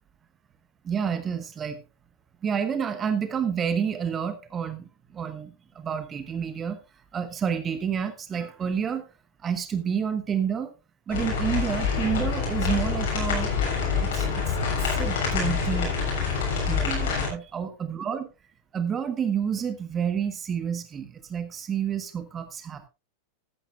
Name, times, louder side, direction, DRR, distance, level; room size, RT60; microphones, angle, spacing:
voice 1, 0.8-1.8 2.4-6.8 7.1-9.0 9.4-10.7 11.1-13.5 14.0-14.6 14.8-16.2 16.7-18.3 18.7-22.9, right 7 dB, 25° right, 10 dB, 1.3 m, -29 dB
sound 1, 11.1-17.3, left 5 dB, 55° left, 6.9 m, -26 dB
15.0 x 12.0 x 2.5 m, 0.27 s
figure-of-eight pair, 90°, 0 cm